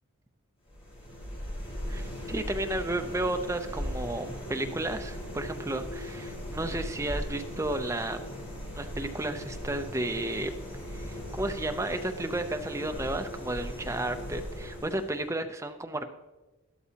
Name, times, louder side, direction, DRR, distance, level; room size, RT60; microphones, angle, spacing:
sound 1, 0.7-15.3, equal, 25° left, 1.9 m, -38 dB
voice 1, 1.9-8.2 8.7-10.5 10.9-16.0, right 1 dB, 15° right, 6 dB, 0.5 m, -33 dB
12.5 x 11.5 x 2.8 m, 1.1 s
head